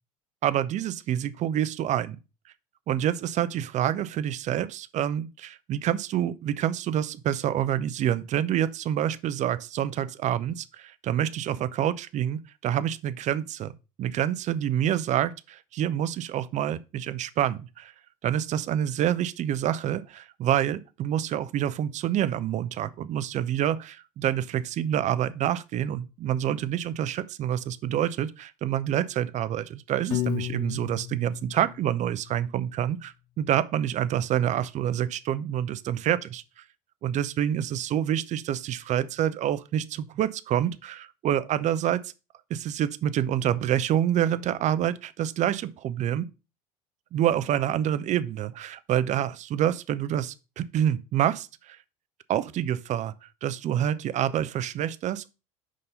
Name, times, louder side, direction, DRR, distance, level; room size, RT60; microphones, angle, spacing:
voice 1, 0.4-2.2 2.9-13.7 14.0-17.9 18.2-36.4 37.0-42.1 42.5-46.3 47.1-51.8 52.3-53.1 53.4-55.3, right 10 dB, 40° right, 0.5 m, -27 dB
Piano, 30.1-32.3, left 14 dB, 70° left, 0.8 m, -33 dB
5.3 x 3.7 x 5.5 m
hypercardioid pair, 70°, 19 cm